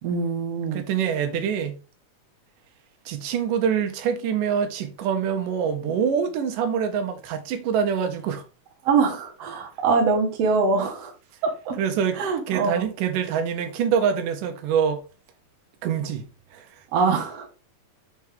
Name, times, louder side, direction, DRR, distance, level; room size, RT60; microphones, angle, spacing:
voice 1, 0.0-0.8 8.8-11.1 11.4-11.8 12.2-12.9 16.9-17.5, right 4 dB, 55° right, 2.3 m, -23 dB
voice 2, 0.7-1.8 3.1-8.4 11.8-12.2 12.5-15.0 15.8-16.3 16.5-16.7, right 7 dB, 90° right, 2.4 m, -25 dB
6.0 x 4.3 x 3.6 m
omnidirectional pair, 3.7 m